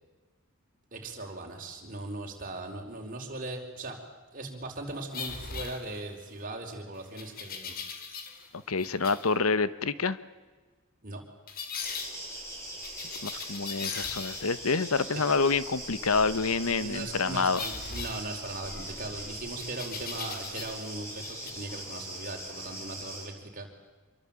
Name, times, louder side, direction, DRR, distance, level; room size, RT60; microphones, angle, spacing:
voice 1, 0.9-4.0 4.3-7.8 11.0-11.2 16.7-23.7, right 2 dB, 40° right, 2 dB, 4.8 m, -39 dB
sound 1, 5.1-6.3 7.2-8.5 8.8-9.3 11.5-12.1 12.8-14.7 17.5-18.8 19.6-20.9 21.2-21.5, left 5 dB, 45° left, 2.9 m, -39 dB
voice 2, 8.7-10.2 13.0-13.2 13.5-17.6, left 4 dB, 90° left, 15 dB, 1.2 m, -27 dB
sound 2, 11.8-23.3, right 1 dB, 15° left, 7.9 m, -41 dB
26.5 x 23.5 x 8.9 m, 1.3 s
head